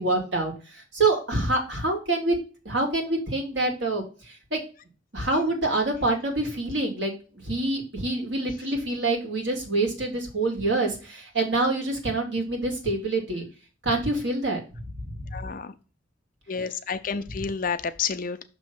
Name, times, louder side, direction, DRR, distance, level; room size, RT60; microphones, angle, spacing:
voice 1, 0.0-2.3 2.6-4.6 5.1-7.1 7.4-13.5 13.8-14.6 15.0-15.3, right 2 dB, 70° right, 2 dB, 2.2 m, -26 dB
voice 2, 15.3-15.7 16.5-18.4, left 6 dB, 45° left, 10 dB, 0.6 m, -30 dB
6.2 x 3.2 x 5.7 m, 0.35 s
head